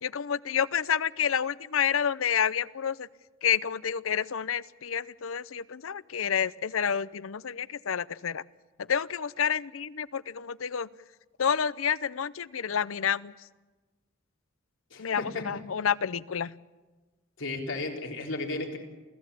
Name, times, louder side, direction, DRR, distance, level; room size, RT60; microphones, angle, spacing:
voice 1, 0.0-3.1 3.4-8.4 8.9-10.9 11.4-13.3 15.0-16.5, left 8 dB, 90° left, 19 dB, 0.6 m, -29 dB
voice 2, 14.9-15.4 17.4-18.8, left 2 dB, 65° left, 1 dB, 4.0 m, -34 dB
28.5 x 16.0 x 8.5 m, 1.2 s
head